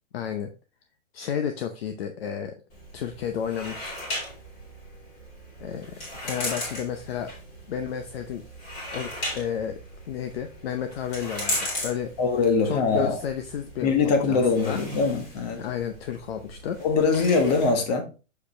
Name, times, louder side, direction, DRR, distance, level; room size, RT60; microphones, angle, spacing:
voice 1, 0.1-0.5 1.1-2.6 2.9-4.0 5.6-5.9 6.2-7.3 7.7-8.4 8.9-9.8 10.1-12.1 12.6-14.8 15.6-16.8, left 8 dB, 50° left, 0.8 m, -32 dB
sound 1, 2.7-17.7, left 1 dB, 20° left, 2.4 m, -37 dB
voice 2, 12.2-13.2 13.8-15.6 16.8-18.1, left 4 dB, 35° left, 1.4 m, -22 dB
6.9 x 4.9 x 3.2 m
hypercardioid pair, 170°, 38 cm